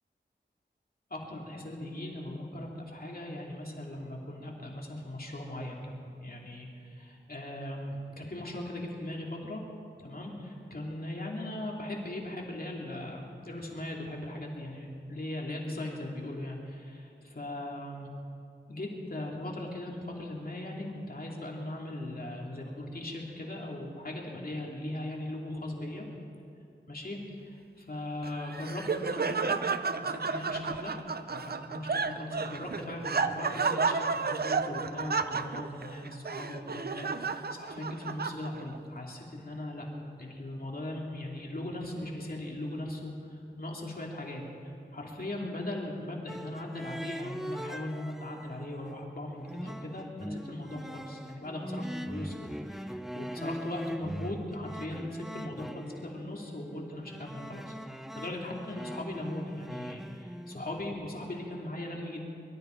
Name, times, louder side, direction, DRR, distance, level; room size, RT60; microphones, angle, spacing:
voice 1, 1.1-5.9 6.2-9.6 10.0-18.1 18.7-26.1 26.9-29.6 30.0-30.9 31.3-57.8 58.1-62.2, left 1 dB, 50° left, -1 dB, 2.7 m, -39 dB
Laughter, 28.2-38.8, right 4 dB, 55° right, 0.6 m, -32 dB
sound 1, 46.3-48.5 48.9-60.9, equal, ahead, 0.6 m, -41 dB
24.0 x 13.0 x 4.5 m, 2.4 s
wide cardioid pair, 65°, 19 cm